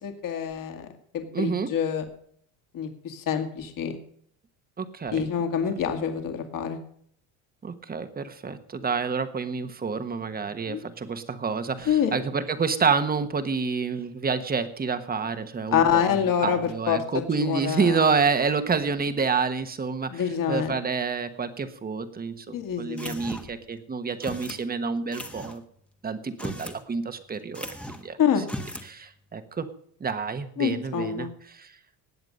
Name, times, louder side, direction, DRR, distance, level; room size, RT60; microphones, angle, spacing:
voice 1, 0.0-0.9 1.1-2.1 2.7-4.0 5.1-6.8 10.7-10.8 11.9-12.1 15.7-17.0 17.4-18.0 20.1-20.8 22.5-23.2 28.2-28.4 30.6-31.3, left 8 dB, 50° left, 5 dB, 2.3 m, -26 dB
voice 2, 1.3-1.7 4.8-5.3 7.6-25.6 26.0-27.7 28.0-28.2 28.8-29.7 30.0-31.3 31.5-31.7, right 5 dB, 20° right, 9 dB, 1.3 m, -28 dB
sound 1, 23.0-23.6 24.2-24.6 25.1-25.6 26.3-26.8 27.1-27.2 27.5-28.1 28.4-28.9, equal, 5° left, 1.3 m, -37 dB
19.0 x 8.0 x 5.4 m, 0.64 s
cardioid pair, 120°, 43 cm